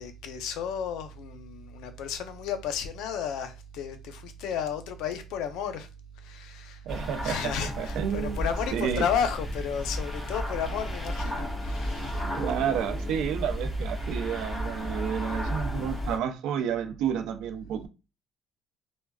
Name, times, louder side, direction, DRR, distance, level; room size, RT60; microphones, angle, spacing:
voice 1, 0.0-5.9 6.2-6.8 7.2-12.2, left 7 dB, 75° left, 0.6 m, -33 dB
sound 1, 6.9-16.2, equal, 15° left, 1.2 m, -33 dB
voice 2, 6.9-8.5 8.7-9.1 12.3-17.9, right 8 dB, 65° right, 0.6 m, -30 dB
3.5 x 2.1 x 2.3 m
cardioid pair, 165°, 0 cm